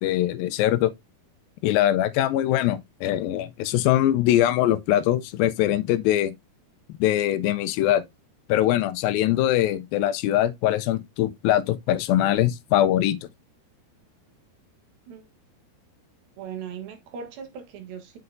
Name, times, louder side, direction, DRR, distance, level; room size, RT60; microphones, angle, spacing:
voice 1, 0.0-0.9 1.6-6.4 7.0-8.0 8.5-13.2, left 13 dB, 80° left, 2.2 m, -22 dB
voice 2, 16.4-18.2, right 7 dB, 70° right, 3.0 m, -38 dB
7.7 x 6.6 x 2.6 m
omnidirectional pair, 4.6 m